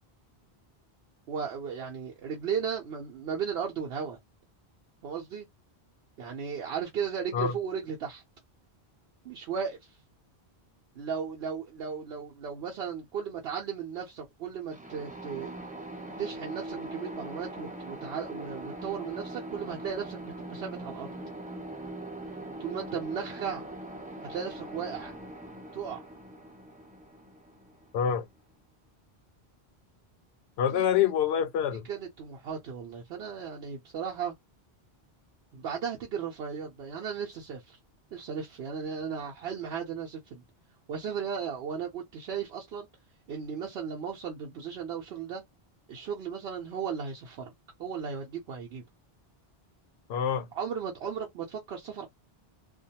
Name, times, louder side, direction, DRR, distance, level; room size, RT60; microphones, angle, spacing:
voice 1, 1.3-4.2 5.0-5.5 6.2-8.2 9.2-10.0 11.0-15.5 16.2-21.1 22.6-23.6 24.2-25.2 25.7-26.1 30.7-31.1 31.7-34.3 35.5-37.8 38.1-40.4 40.9-42.9 43.3-45.4 45.9-47.5 47.8-48.8 50.5-52.1, right 7 dB, 75° right, 0.9 m, -36 dB
sound 1, 14.7-28.4, right 1 dB, 10° right, 0.4 m, -42 dB
voice 2, 27.9-28.3 30.6-31.8 50.1-50.5, left 8 dB, 80° left, 0.8 m, -26 dB
2.4 x 2.2 x 2.8 m
omnidirectional pair, 1.1 m